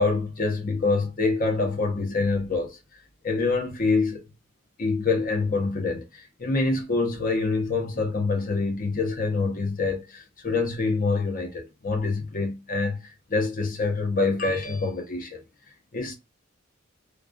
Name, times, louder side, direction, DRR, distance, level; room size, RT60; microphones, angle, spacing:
voice 1, 0.0-2.8 3.2-4.2 4.8-13.0 13.3-15.4 15.9-16.2, left 3 dB, 45° left, 0.7 m, -26 dB
2.3 x 2.3 x 2.4 m
head